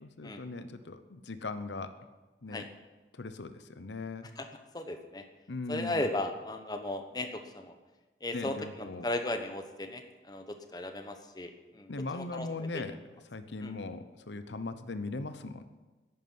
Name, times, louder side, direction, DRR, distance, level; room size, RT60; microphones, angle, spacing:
voice 1, 0.0-1.9 2.4-2.6 3.1-4.3 5.5-6.1 8.3-9.1 11.9-13.0 13.3-15.6, left 3 dB, 90° left, 11 dB, 0.9 m, -39 dB
voice 2, 4.7-5.2 5.7-7.7 8.2-12.8 13.6-13.7, left 1 dB, 20° left, 6 dB, 1.0 m, -36 dB
11.0 x 9.7 x 9.5 m, 1.2 s
head